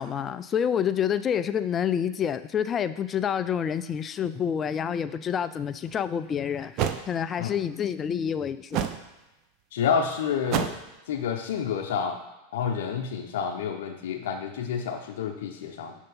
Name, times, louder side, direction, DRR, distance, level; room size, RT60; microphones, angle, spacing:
voice 1, 0.0-6.8 7.1-8.9, left 8 dB, 30° left, 12 dB, 0.3 m, -28 dB
sound 1, 5.9-6.0 6.8-7.0 8.7-9.1 10.5-10.9, right 9 dB, 45° right, 0.4 m, -27 dB
voice 2, 9.7-10.8 11.1-12.2 12.5-16.0, left 7 dB, 75° left, 4 dB, 0.6 m, -29 dB
6.6 x 2.8 x 5.4 m, 1.0 s
hypercardioid pair, 115°, 0 cm